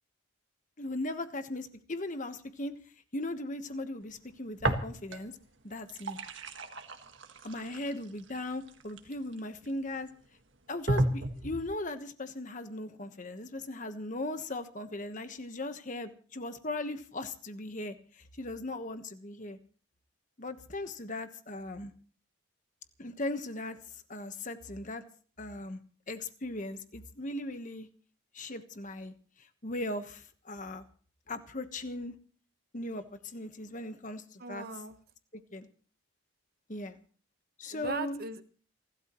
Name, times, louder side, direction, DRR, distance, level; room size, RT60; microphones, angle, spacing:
voice 1, 0.8-2.7 3.1-5.4 5.6-6.2 7.4-10.1 10.7-19.6 20.4-21.9 23.0-23.8 24.1-25.0 25.4-25.8 26.1-27.9 28.3-30.8 31.3-32.1 32.7-34.6 35.5-35.7 36.7-37.0 37.6-38.2, left 2 dB, 40° left, 9 dB, 1.3 m, -38 dB
sound 1, 4.6-5.4 5.7-9.7 10.2-10.3 10.9-11.8, right 1 dB, 65° right, 1.7 m, -33 dB
voice 2, 34.4-35.0 37.7-38.4, right 3 dB, 50° right, 9 dB, 1.2 m, -38 dB
29.0 x 12.5 x 3.1 m, 0.43 s
head